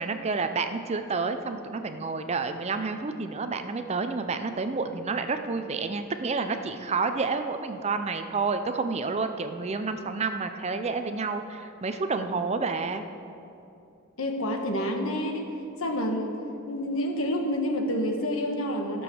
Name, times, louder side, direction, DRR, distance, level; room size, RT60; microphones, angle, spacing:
voice 1, 0.0-13.1, right 4 dB, 30° right, 8 dB, 0.5 m, -29 dB
voice 2, 14.2-15.5 15.8-16.4 16.7-19.0, equal, 75° left, 3 dB, 1.3 m, -28 dB
13.0 x 7.0 x 6.3 m, 2.7 s
head